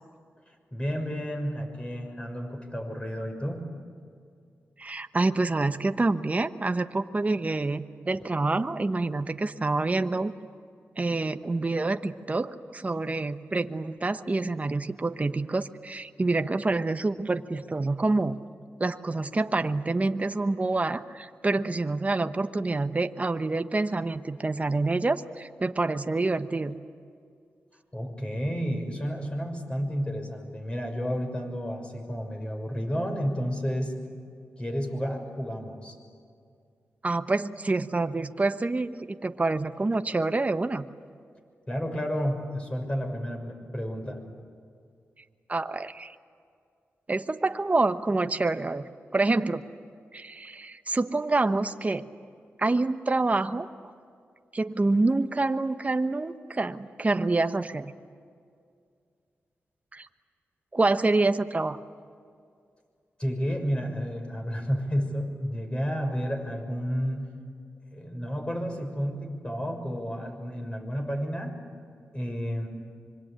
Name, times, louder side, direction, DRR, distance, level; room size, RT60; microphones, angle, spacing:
voice 1, 0.7-3.6 27.9-34.0 34.6-36.0 41.7-44.2 63.2-67.3 67.9-71.5 72.1-72.7, equal, 20° left, 3 dB, 6.3 m, -31 dB
voice 2, 4.8-10.3 11.0-18.4 18.8-26.7 37.0-40.8 45.5-46.2 47.1-49.6 50.1-52.1 52.6-53.9 54.5-57.9 59.9-60.1 60.7-61.8, right 3 dB, 30° right, 9 dB, 1.1 m, -27 dB
25.5 x 23.5 x 8.9 m, 2.2 s
cardioid pair, 65°, 5 cm